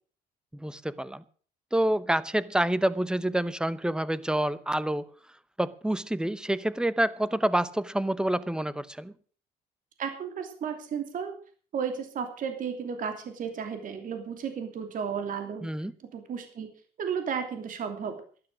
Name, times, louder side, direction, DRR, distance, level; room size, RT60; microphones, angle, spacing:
voice 1, 0.5-1.2 1.7-5.1 5.6-9.1 15.6-15.9, right 1 dB, 5° right, 17 dB, 0.9 m, -27 dB
voice 2, 10.0-11.3 11.7-15.7 16.1-16.7 17.0-18.2, right 7 dB, 55° right, 6 dB, 2.9 m, -33 dB
12.5 x 11.5 x 6.3 m, 0.44 s
cardioid pair, 110°, 17 cm